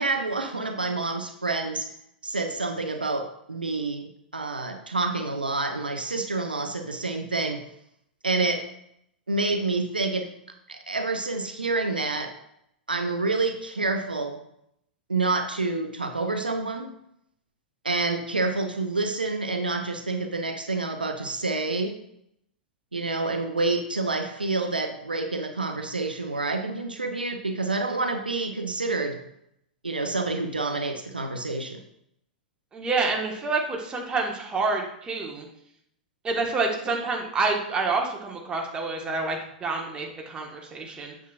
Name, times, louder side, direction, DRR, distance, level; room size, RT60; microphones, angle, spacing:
voice 1, 0.0-1.9 2.2-7.6 8.2-8.6 9.3-10.3 10.7-12.3 12.9-14.4 15.1-16.9 17.8-22.0 22.9-29.2 29.8-31.8, right 3 dB, 85° right, 6 dB, 0.7 m, -28 dB
voice 2, 32.7-35.5 36.2-41.1, right 3 dB, 20° right, 1 dB, 1.5 m, -28 dB
8.2 x 7.3 x 2.5 m, 0.75 s
figure-of-eight pair, 95°, 5 cm